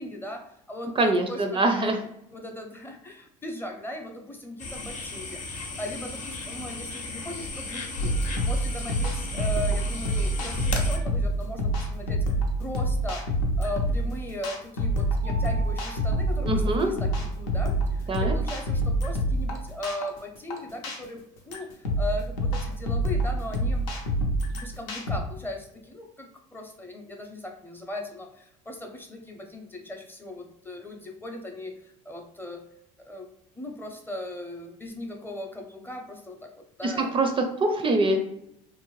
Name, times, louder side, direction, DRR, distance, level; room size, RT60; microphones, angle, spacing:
voice 1, 0.0-2.1 2.3-12.2 12.6-13.3 13.6-23.9 24.5-32.6 33.0-37.2, left 1 dB, 15° left, 3 dB, 0.6 m, -38 dB
voice 2, 1.0-2.0 16.4-16.9 18.1-18.3 36.8-38.2, right 2 dB, 30° right, 4 dB, 0.4 m, -24 dB
sound 1, 4.6-11.0, left 3 dB, 50° left, 0.7 m, -35 dB
sound 2, 8.0-25.2, right 1 dB, 85° left, 0.6 m, -27 dB
Mallet percussion, 15.2-17.7, right 1 dB, 85° right, 0.6 m, -46 dB
2.6 x 2.1 x 3.0 m, 0.78 s
supercardioid pair, 85°, 16 cm